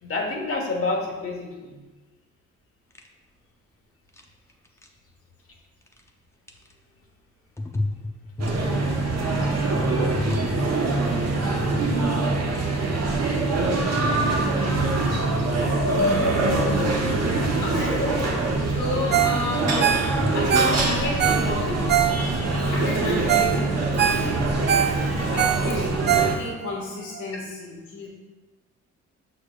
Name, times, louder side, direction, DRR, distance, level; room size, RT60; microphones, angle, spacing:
voice 1, 0.0-1.8 15.6-17.3 17.8-18.2 20.6-20.9 24.1-24.2 25.2-25.6 25.9-26.0, left 2 dB, 50° left, 0 dB, 1.4 m, -29 dB
sound 1, 2.9-3.1 4.1-4.2 4.5-4.9 5.8-6.1 6.5-6.7 7.6-11.3 11.6-11.9 12.3-12.7 13.1-13.5 14.1-14.3 14.9-15.4 15.7-16.2 16.5-16.9 17.3-17.8 18.5-18.6 19.0-19.4 20.0-20.5, left 2 dB, 10° left, 0.6 m, -34 dB
sound 2, 8.4-26.4, right 3 dB, 60° right, 1.2 m, -24 dB
voice 2, 17.6-18.0 18.7-19.9 20.3-21.9 22.7-24.5 25.1-25.9 26.4-28.1, left 2 dB, 75° left, -4 dB, 1.8 m, -31 dB
Ringtone, 19.1-19.4 19.7-22.5 23.0-23.1 23.3-23.6 23.8-26.7 27.2-27.3, right 9 dB, 35° right, 0.4 m, -23 dB
6.4 x 6.3 x 2.5 m, 1.2 s
cardioid pair, 90°, 30 cm